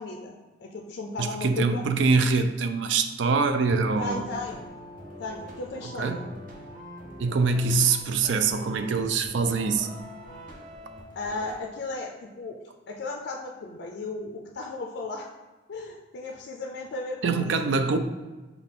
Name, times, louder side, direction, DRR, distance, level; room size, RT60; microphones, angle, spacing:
voice 1, 0.0-1.8 4.0-4.6 5.2-6.2 11.1-12.6 12.9-15.3 15.7-17.5 17.9-18.0, left 3 dB, 65° left, 1 dB, 0.4 m, -35 dB
voice 2, 1.2-4.3 6.0-6.2 7.2-9.9 17.2-18.0, right 4 dB, 70° right, 9 dB, 0.4 m, -24 dB
sound 1, 3.9-11.6, equal, 45° right, 0.7 m, -44 dB
5.7 x 2.3 x 3.7 m, 1.2 s
head